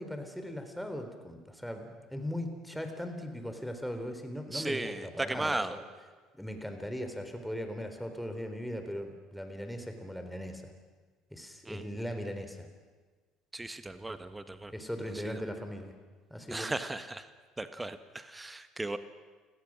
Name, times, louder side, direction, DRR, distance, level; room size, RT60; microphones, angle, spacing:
voice 1, 0.0-5.8 6.3-10.7 11.3-12.7 14.7-15.9 16.3-16.8, equal, ahead, 6 dB, 3.8 m, -39 dB
voice 2, 4.5-5.8 11.6-11.8 13.5-14.7 15.1-15.4 16.5-17.3 17.6-19.0, right 2 dB, 15° right, 11 dB, 1.3 m, -36 dB
29.5 x 17.0 x 6.4 m, 1.4 s
hypercardioid pair, 65°, 0 cm